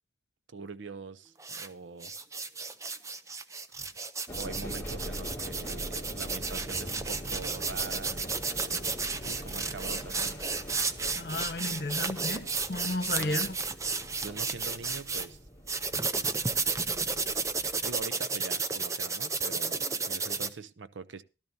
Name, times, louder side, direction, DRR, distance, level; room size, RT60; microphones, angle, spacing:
voice 1, 0.5-2.1 4.4-8.2 8.6-10.4 13.2-13.4 14.2-15.4 16.8-17.2 17.8-21.2, right 4 dB, 85° right, 15 dB, 0.7 m, -43 dB
sound 1, 1.4-1.7 2.0-15.3 15.7-20.5, right 4 dB, 15° right, 0.5 m, -32 dB
sound 2, 4.3-18.1, equal, 15° left, 2.1 m, -43 dB
voice 2, 11.1-13.6, left 2 dB, 55° left, 8 dB, 1.2 m, -33 dB
16.0 x 12.5 x 2.7 m, 0.31 s
head